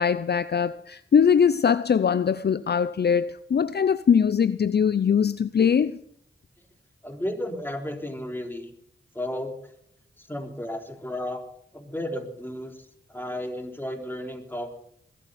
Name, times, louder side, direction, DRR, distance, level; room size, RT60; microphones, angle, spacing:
voice 1, 0.0-6.0, left 7 dB, 55° left, 0.5 m, -21 dB
voice 2, 7.0-8.7 9.1-9.7 10.2-11.4 11.7-14.7, left 1 dB, 10° left, 3.7 m, -33 dB
21.0 x 12.5 x 4.2 m
cardioid pair, 55°, 21 cm